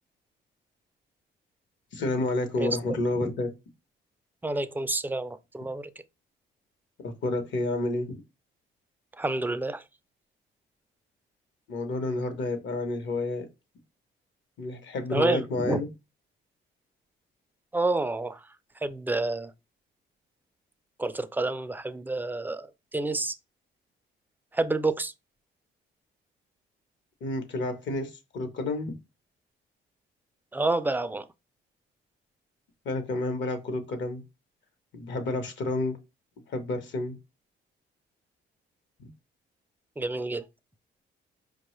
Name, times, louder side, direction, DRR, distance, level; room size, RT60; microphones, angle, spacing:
voice 1, 1.9-3.5 7.0-8.2 11.7-13.5 14.6-15.9 27.2-28.9 32.8-34.2 34.9-36.0 36.5-37.2, left 2 dB, 65° left, 0.9 m, -30 dB
voice 2, 4.4-5.9 9.2-9.8 15.1-15.8 17.7-18.4 18.8-19.5 21.0-23.3 24.5-25.1 30.5-31.3 40.0-40.4, right 2 dB, 10° right, 0.3 m, -29 dB
4.7 x 2.2 x 3.0 m
cardioid pair, 90°, 20 cm